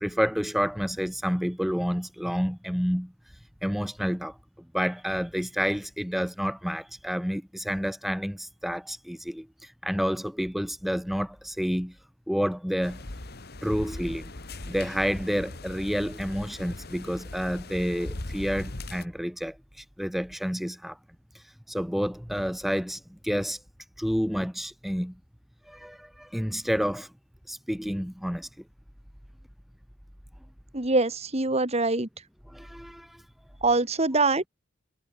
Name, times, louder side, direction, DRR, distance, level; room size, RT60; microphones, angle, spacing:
voice 1, 0.0-3.1 3.6-4.3 4.7-11.9 12.3-13.0 13.6-14.3 14.7-21.0 21.7-23.6 24.0-25.1 25.7-27.1 27.5-28.5 32.5-33.2, equal, ahead, 1.0 m, -29 dB
sound 1, 12.8-19.1, left 2 dB, 50° left, 1.9 m, -39 dB
voice 2, 30.7-32.1 33.6-34.4, right 3 dB, 30° right, 1.8 m, -24 dB
head